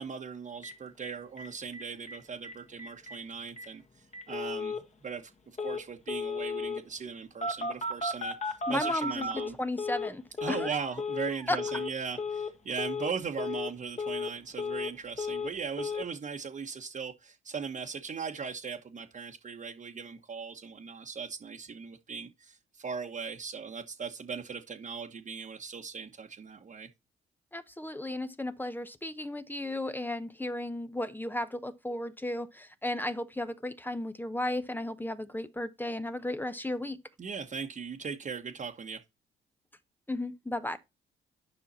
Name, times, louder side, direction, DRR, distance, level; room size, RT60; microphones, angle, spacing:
voice 1, 0.0-3.8 4.3-5.3 5.6-9.6 10.4-26.9 37.2-39.0, right 6 dB, 40° right, 1.2 m, -39 dB
Telephone, 0.6-0.7 1.0-1.1 1.4-1.5 1.7-2.2 2.4-2.5 2.8-3.2 3.6-3.7 4.1-4.8 5.6-5.8 6.1-6.8 7.4-10.1 10.4-10.7 11.0-11.3 11.6-11.9 12.2-12.5 12.8-13.1 13.4-13.7 14.0-14.9 15.2-15.5 15.8-16.0, left 3 dB, 35° left, 1.9 m, -34 dB
voice 2, 8.7-10.8 11.5-11.6 27.5-37.0 40.1-40.8, left 1 dB, 10° left, 0.9 m, -34 dB
10.0 x 5.6 x 4.1 m
cardioid pair, 90°, 20 cm